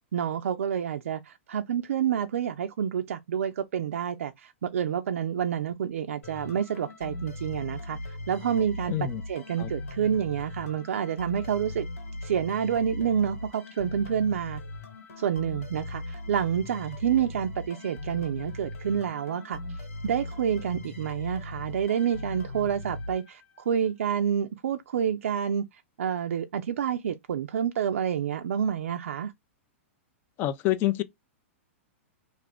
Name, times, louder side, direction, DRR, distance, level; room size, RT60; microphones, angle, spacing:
voice 1, 0.1-8.0 8.3-8.9 9.3-11.9 12.2-14.6 15.2-19.6 20.0-25.6 26.0-29.3, right 8 dB, 85° right, 0.4 m, -28 dB
sound 1, 6.2-23.8, left 2 dB, 85° left, 1.6 m, -39 dB
voice 2, 8.9-9.2 9.6-9.7 30.4-31.0, left 14 dB, 30° left, 0.3 m, -27 dB
2.5 x 2.5 x 3.3 m
hypercardioid pair, 145°, 7 cm